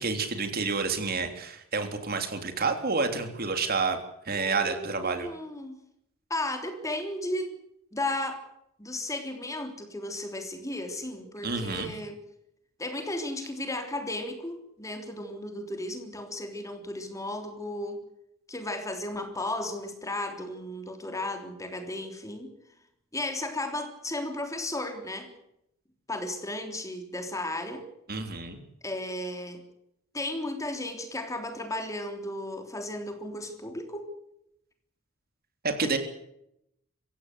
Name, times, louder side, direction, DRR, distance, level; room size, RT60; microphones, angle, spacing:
voice 1, 0.0-4.0 4.2-5.3 11.4-11.9 28.1-28.6 35.6-36.0, right 4 dB, 45° right, 6 dB, 3.4 m, -29 dB
voice 2, 4.3-5.8 6.3-7.6 7.9-8.4 8.8-12.2 12.8-18.0 18.5-22.5 23.1-25.3 26.1-27.8 28.8-29.6 30.1-34.1 35.8-36.0, left 1 dB, 15° left, 5 dB, 3.4 m, -34 dB
25.5 x 16.0 x 8.1 m, 0.78 s
head